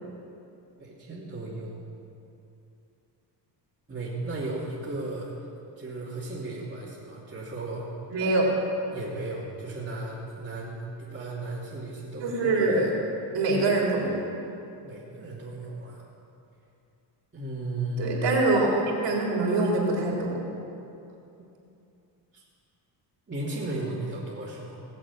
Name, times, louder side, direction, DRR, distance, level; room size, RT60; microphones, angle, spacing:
voice 1, 0.8-1.7 3.9-5.3 5.8-7.9 8.9-12.9 14.8-16.0 17.3-18.2 21.4-21.5 22.3-22.4 23.3-24.8, right 2 dB, 25° right, -9 dB, 3.0 m, -35 dB
voice 2, 8.1-8.5 12.2-12.9 13.3-14.2 18.0-20.4, right 2 dB, 80° right, -2 dB, 3.8 m, -24 dB
18.0 x 7.6 x 8.7 m, 2.7 s
cardioid pair, 120°, 43 cm